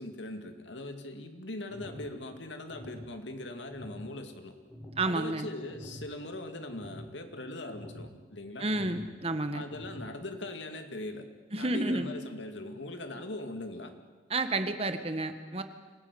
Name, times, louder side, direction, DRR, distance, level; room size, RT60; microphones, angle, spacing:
voice 1, 0.0-4.5 5.0-8.7 9.5-11.3 11.6-13.9, left 2 dB, 85° left, 6 dB, 2.4 m, -40 dB
sound 1, 1.7-2.1 2.7-3.1 3.7-4.1 4.7-5.1 5.7-6.1 6.7-7.1 7.7-8.1 8.7-9.1 9.7-10.1, left 1 dB, 5° left, 5.4 m, -46 dB
voice 2, 5.0-5.5 8.6-9.6 11.5-12.1 14.3-15.6, right 2 dB, 30° right, 8 dB, 1.5 m, -30 dB
25.5 x 16.0 x 9.8 m, 1.4 s
head